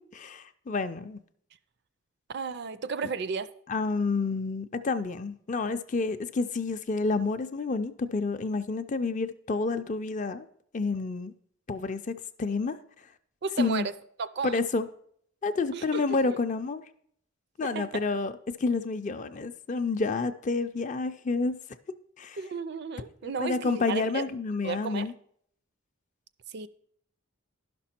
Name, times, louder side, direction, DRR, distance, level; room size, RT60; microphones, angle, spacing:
voice 1, 0.1-1.2 3.7-10.5 10.7-11.3 11.7-12.1 12.4-12.7 13.6-13.9 14.4-14.9 15.4-16.8 17.6-18.3 18.6-21.5 22.2-22.4 23.4-25.1, left 3 dB, 35° left, 0.4 m, -29 dB
voice 2, 2.3-3.5 13.4-13.9 14.2-14.6 15.7-16.0 16.3-16.4 17.6-17.9 22.4-24.2 24.6-25.1 26.5-26.7, right 5 dB, 50° right, 0.4 m, -33 dB
11.5 x 6.0 x 4.3 m
head